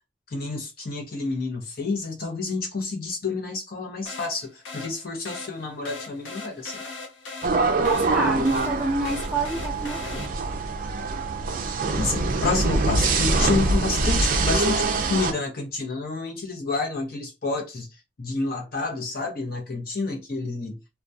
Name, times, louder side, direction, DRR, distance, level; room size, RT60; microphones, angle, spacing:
voice 1, 0.3-6.8 12.0-14.8 15.1-17.9 18.2-20.8, left 3 dB, 50° left, 0.7 m, -29 dB
sound 1, 4.1-10.7, left 3 dB, 85° left, 0.8 m, -40 dB
sound 2, 7.4-15.3, right 3 dB, 45° right, 0.4 m, -24 dB
voice 2, 7.6-10.3, right 2 dB, 5° right, 0.6 m, -28 dB
2.2 x 2.2 x 2.6 m
head